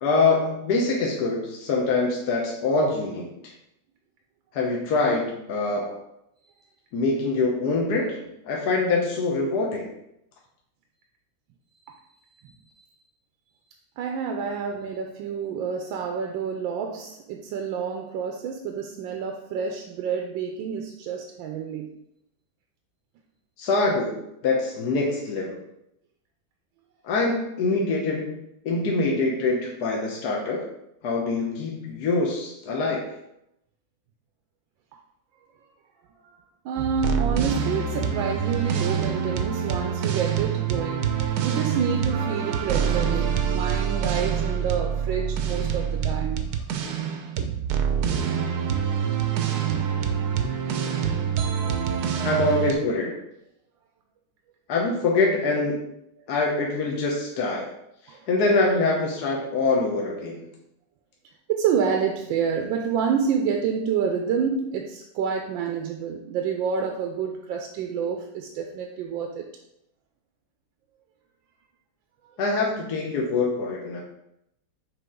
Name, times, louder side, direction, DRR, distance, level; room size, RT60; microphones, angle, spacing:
voice 1, 0.0-3.5 4.5-6.0 6.9-9.9 23.6-25.6 27.0-28.4 28.6-30.7 31.0-33.0 52.2-53.2 54.7-55.8 56.3-57.7 58.0-60.5 72.4-74.0, left 3 dB, 60° left, -1 dB, 1.3 m, -24 dB
voice 2, 14.0-22.0 35.6-35.7 36.2-36.4 36.6-46.4 49.1-49.5 58.1-58.3 61.5-69.4, right 6 dB, 85° right, 3 dB, 1.3 m, -28 dB
sound 1, 36.8-52.7, right 7 dB, 65° right, 1.0 m, -26 dB
6.7 x 4.3 x 3.7 m, 0.82 s
omnidirectional pair, 2.1 m